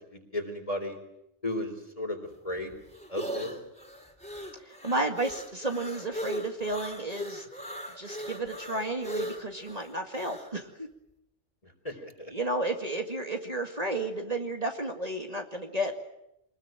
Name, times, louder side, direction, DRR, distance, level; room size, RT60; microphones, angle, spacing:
voice 1, 0.1-1.0 1.4-2.2 2.4-2.7 3.1-3.6 11.6-12.3, left 1 dB, 30° left, 6 dB, 3.8 m, -34 dB
sound 1, 2.3-10.5, equal, 5° left, 3.6 m, -39 dB
voice 2, 4.6-7.5 8.0-10.9 12.3-15.9, right 2 dB, 35° right, 4 dB, 2.1 m, -32 dB
25.0 x 20.5 x 9.0 m, 0.83 s
omnidirectional pair, 1.2 m